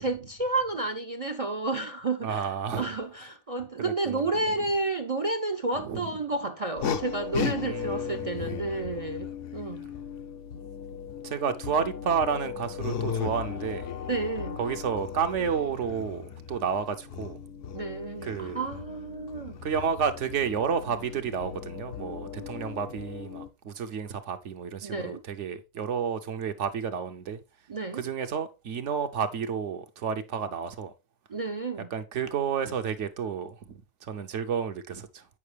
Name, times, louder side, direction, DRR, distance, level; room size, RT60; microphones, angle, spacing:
voice 1, 0.0-9.9 14.0-14.6 17.7-19.6 22.4-22.5 24.8-25.2 27.7-28.0 31.3-31.9, right 3 dB, 50° right, 0.4 m, -31 dB
voice 2, 2.2-2.9 3.8-4.5 5.8-6.1 7.6-8.6 11.2-13.9 14.6-17.4 18.2-18.6 19.6-27.4 27.9-30.9 31.9-33.8 34.1-35.2, right 7 dB, 70° right, 1.0 m, -31 dB
sound 1, 6.8-23.5, left 7 dB, 70° left, 1.1 m, -36 dB
8.4 x 5.1 x 3.3 m
omnidirectional pair, 1.4 m